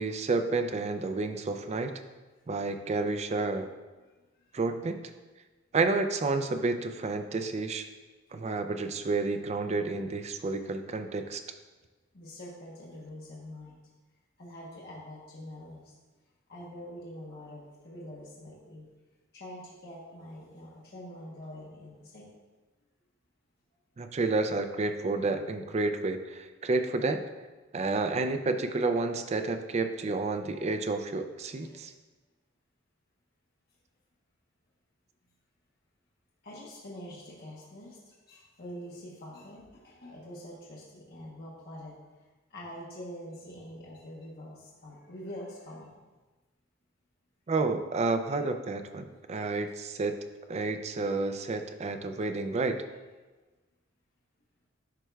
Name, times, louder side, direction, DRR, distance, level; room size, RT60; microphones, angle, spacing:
voice 1, 0.0-2.0 2.5-3.7 4.5-5.0 5.7-7.9 8.3-11.4 24.0-27.2 27.7-31.9 47.5-50.2 50.5-52.8, right 3 dB, 35° right, 8 dB, 0.4 m, -30 dB
voice 2, 12.1-13.8 14.4-15.9 16.5-18.9 19.3-22.2 31.6-31.7 36.4-42.0 42.5-46.0, left 1 dB, 50° left, -5 dB, 1.0 m, -45 dB
10.5 x 4.4 x 2.3 m, 1.2 s
head